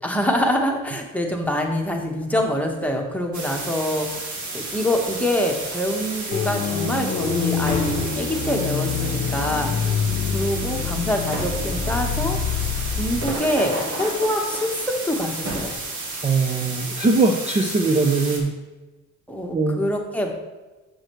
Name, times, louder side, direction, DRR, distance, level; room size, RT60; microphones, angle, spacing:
voice 1, 0.0-4.3 4.5-9.9 10.3-12.6 13.0-14.8 15.1-15.7 19.3-20.4, left 1 dB, 5° left, 1 dB, 1.2 m, -25 dB
sound 1, 3.3-18.4, right 3 dB, 75° right, 1.7 m, -32 dB
sound 2, 5.0-15.7, right 1 dB, 60° right, 2.5 m, -36 dB
sound 3, 6.3-13.3, left 7 dB, 65° left, 0.8 m, -26 dB
voice 2, 16.2-18.5 19.5-19.8, right 3 dB, 20° right, 3 dB, 0.6 m, -21 dB
7.7 x 6.3 x 3.1 m, 1.2 s
cardioid pair, 90°, 30 cm